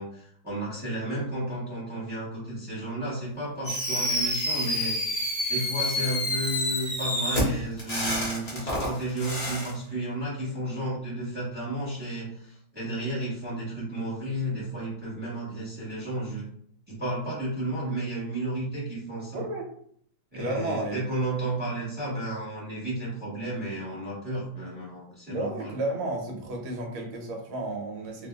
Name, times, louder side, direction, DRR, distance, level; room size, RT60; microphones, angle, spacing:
voice 1, 0.0-5.0 5.5-16.5 16.9-19.4 20.3-25.7, right 1 dB, 5° right, -8 dB, 0.8 m, -32 dB
Fireworks, 3.6-9.7, left 1 dB, 30° left, 0.7 m, -28 dB
voice 2, 19.3-19.7 20.4-21.0 25.3-28.3, right 2 dB, 80° right, 0 dB, 1.6 m, -32 dB
3.4 x 2.5 x 2.3 m, 0.64 s
omnidirectional pair, 2.2 m